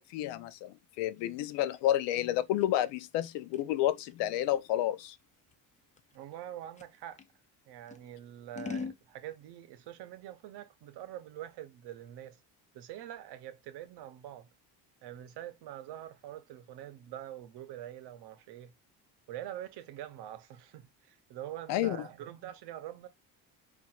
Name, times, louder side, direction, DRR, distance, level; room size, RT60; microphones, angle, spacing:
voice 1, 0.0-5.2 21.7-22.1, left 13 dB, 85° left, 0.6 m, -30 dB
Scissors, 1.2-7.3 7.9-9.0, left 5 dB, 20° left, 0.3 m, -45 dB
voice 2, 6.1-7.2 7.7-12.4 12.7-14.5 15.0-18.7 19.3-23.1, right 12 dB, 70° right, 0.8 m, -45 dB
4.1 x 2.5 x 2.3 m
cardioid pair, 105°, 42 cm